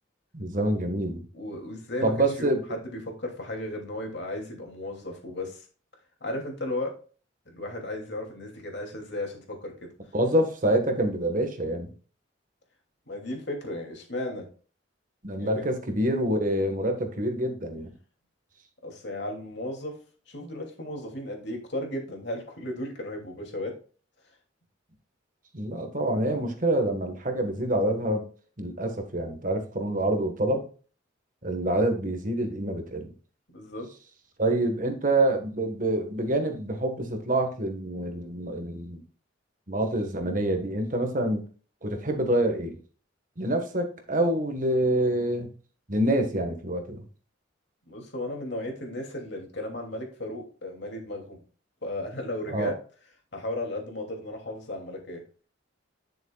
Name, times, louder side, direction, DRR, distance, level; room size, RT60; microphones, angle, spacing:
voice 1, 0.3-1.3 2.0-2.6 10.1-11.9 15.2-17.9 25.5-28.2 28.6-30.7 31.4-33.1 34.4-39.0 39.7-41.4 41.8-42.8 43.4-45.5 45.9-47.0 52.5-52.8, right 1 dB, 40° right, 5 dB, 1.5 m, -26 dB
voice 2, 1.3-2.1 2.4-5.7 6.2-6.9 7.5-9.9 13.1-14.4 15.4-15.7 18.8-20.0 20.3-23.7 33.5-33.9 47.9-51.4 51.8-52.7 53.3-55.2, left 1 dB, 60° left, 1 dB, 2.7 m, -35 dB
10.5 x 6.9 x 2.4 m, 0.38 s
head